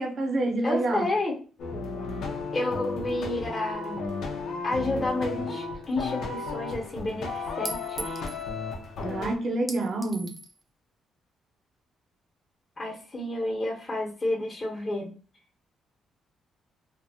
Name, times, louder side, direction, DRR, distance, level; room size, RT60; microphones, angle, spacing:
voice 1, 0.0-1.1 9.0-10.4, right 2 dB, 50° right, 0.8 m, -28 dB
voice 2, 0.6-1.3 2.5-4.1 4.6-8.2 12.8-15.1, left 2 dB, 25° left, 1.1 m, -30 dB
sound 1, 1.6-9.4, left 4 dB, 75° left, 0.8 m, -34 dB
Chink clink, 5.9-6.0 7.7-8.5 9.7-10.6, right 1 dB, 15° right, 0.5 m, -39 dB
3.0 x 2.4 x 2.8 m
cardioid pair, 90°, 0 cm